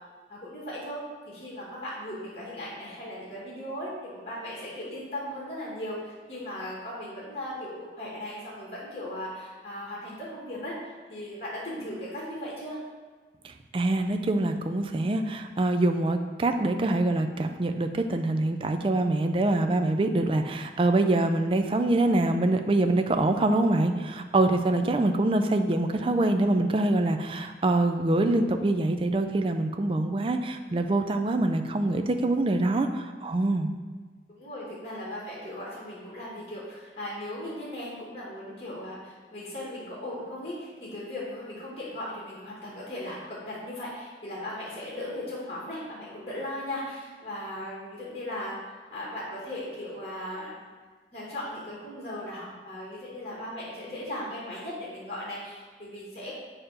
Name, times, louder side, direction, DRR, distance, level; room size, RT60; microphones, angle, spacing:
voice 1, 0.3-12.8 23.3-23.6 24.7-24.9 34.3-50.5 51.1-56.3, left 1 dB, 35° left, -6 dB, 1.4 m, -37 dB
voice 2, 13.4-33.7, right 2 dB, 30° right, 6 dB, 0.3 m, -25 dB
6.6 x 2.9 x 5.1 m, 1.4 s
head